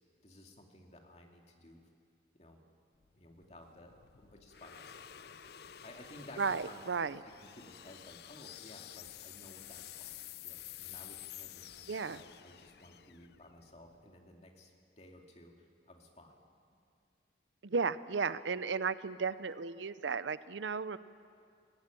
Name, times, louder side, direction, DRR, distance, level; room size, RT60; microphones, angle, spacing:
voice 1, 0.2-1.8 2.3-2.6 3.2-5.3 5.8-6.8 7.1-10.1 10.4-16.4, left 1 dB, 35° left, 2 dB, 2.6 m, -55 dB
sound 1, 3.0-14.3, left 11 dB, 60° left, 0.5 m, -51 dB
voice 2, 6.4-7.2 11.9-12.2 17.6-21.0, right 5 dB, 90° right, 15 dB, 0.7 m, -34 dB
21.0 x 16.5 x 10.0 m, 2.3 s
head